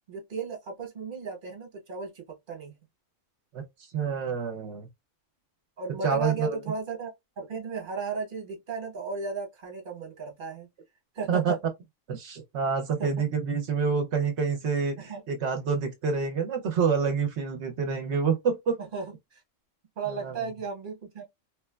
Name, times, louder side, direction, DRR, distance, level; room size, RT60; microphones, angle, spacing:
voice 1, 0.1-2.7 5.8-7.1 7.4-10.7 11.1-11.6 13.0-13.3 15.0-15.2 18.8-19.4 20.0-21.2, right 5 dB, 45° right, 1.1 m, -35 dB
voice 2, 3.9-4.9 6.0-6.6 11.3-11.5 12.1-15.0 15.3-18.8 20.2-20.4, right 5 dB, 65° right, 0.9 m, -27 dB
3.0 x 2.2 x 2.2 m
omnidirectional pair, 1.3 m